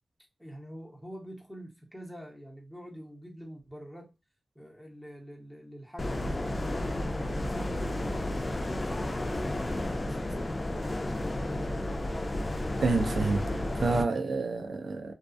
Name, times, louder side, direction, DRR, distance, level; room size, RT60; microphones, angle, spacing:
voice 1, 0.4-4.1 4.5-6.7 7.2-11.9, equal, ahead, 0.9 m, -45 dB
sound 1, 6.0-14.0, left 1 dB, 30° left, 0.3 m, -32 dB
voice 2, 12.8-15.1, right 3 dB, 90° right, 0.4 m, -29 dB
2.3 x 2.3 x 2.5 m
wide cardioid pair, 90°, 0 cm